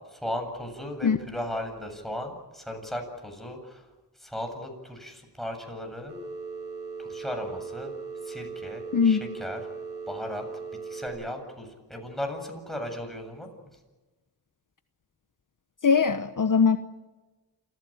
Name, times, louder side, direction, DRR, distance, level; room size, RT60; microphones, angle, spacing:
voice 1, 0.1-3.8 4.2-6.1 7.0-7.9 8.3-9.6 10.1-10.5 10.9-13.5, left 1 dB, ahead, 3 dB, 7.9 m, -36 dB
Telephone, 6.1-11.1, right 4 dB, 85° right, 5.5 m, -38 dB
voice 2, 15.8-16.8, left 6 dB, 50° left, 9 dB, 1.1 m, -21 dB
27.5 x 16.0 x 8.9 m, 1.2 s
cardioid pair, 60°, 41 cm